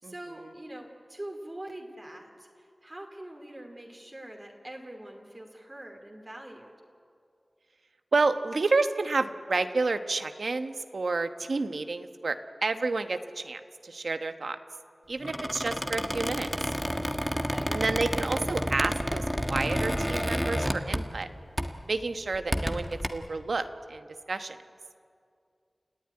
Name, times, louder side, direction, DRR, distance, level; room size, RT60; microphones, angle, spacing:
voice 1, 0.0-6.7 17.3-17.8, right 1 dB, 30° right, 1 dB, 2.7 m, -44 dB
voice 2, 8.1-14.6 15.1-16.5 17.7-21.3 21.9-24.6, right 3 dB, 85° right, 8 dB, 1.1 m, -30 dB
Squeak, 15.2-21.3 21.6-21.8 22.3-23.1, equal, ahead, 1.4 m, -30 dB
29.5 x 15.0 x 9.8 m, 2.3 s
wide cardioid pair, 70°, 0 cm